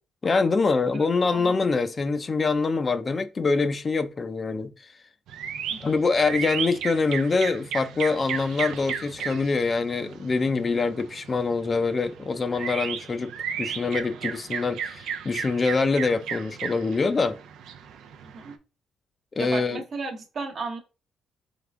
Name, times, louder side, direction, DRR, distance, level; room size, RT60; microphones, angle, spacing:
voice 1, 0.2-4.9 5.8-13.3 13.6-17.4 19.4-19.8, left 4 dB, 35° left, 0.4 m, -25 dB
voice 2, 0.9-1.7 5.7-6.0 18.3-18.5 19.4-20.8, right 4 dB, 55° right, 1.2 m, -35 dB
sound 1, 5.3-18.5, right 7 dB, 80° right, 0.5 m, -35 dB
3.5 x 3.4 x 3.5 m
cardioid pair, 90°, 0 cm